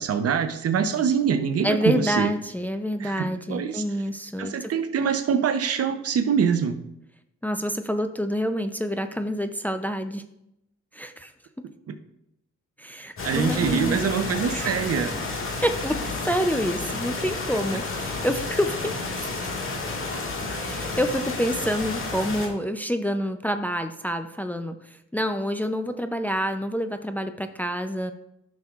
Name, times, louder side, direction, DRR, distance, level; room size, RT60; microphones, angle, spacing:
voice 1, 0.0-2.3 3.0-3.8 4.4-6.8 11.9-12.0 13.2-15.1, right 7 dB, 55° right, 9 dB, 0.7 m, -24 dB
voice 2, 1.6-4.7 7.4-10.2 10.9-11.3 12.8-14.0 14.5-14.7 15.6-19.3 20.6-28.1, equal, 5° left, 7 dB, 0.5 m, -27 dB
sound 1, 13.2-22.5, left 3 dB, 45° left, 1.8 m, -31 dB
10.5 x 6.2 x 2.4 m, 0.81 s
cardioid pair, 85°, 29 cm